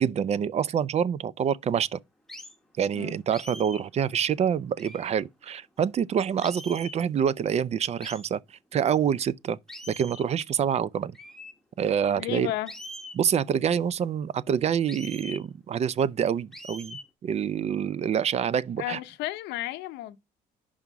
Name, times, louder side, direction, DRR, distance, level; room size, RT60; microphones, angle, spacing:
voice 1, 0.0-2.0 2.8-8.4 8.7-9.6 9.9-11.1 11.8-12.5 13.1-19.0, right 8 dB, 40° right, 0.4 m, -26 dB
sound 1, 2.3-2.6 3.3-3.9 4.8-5.2 6.4-7.0 8.0-8.3 9.7-10.3 11.1-11.5 12.7-13.2 14.9-15.5 16.5-17.1, left 1 dB, ahead, 1.0 m, -43 dB
voice 2, 12.2-12.7 18.8-20.2, left 15 dB, 85° left, 0.7 m, -33 dB
5.5 x 4.8 x 4.5 m
cardioid pair, 110°, 17 cm